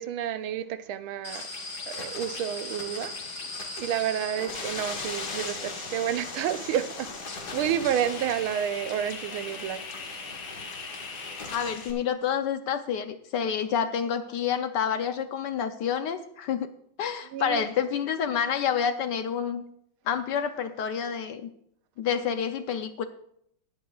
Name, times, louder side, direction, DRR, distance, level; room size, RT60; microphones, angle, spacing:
voice 1, 0.0-1.4 1.9-3.1 3.8-7.1 7.5-9.8 17.3-17.6, right 10 dB, 85° right, 1.5 m, -30 dB
sound 1, 1.2-11.9, left 3 dB, 50° left, 2.2 m, -37 dB
voice 2, 11.5-16.7 17.0-19.6 20.1-21.5 22.0-23.1, left 8 dB, 70° left, 1.1 m, -28 dB
19.0 x 9.8 x 2.4 m
omnidirectional pair, 2.3 m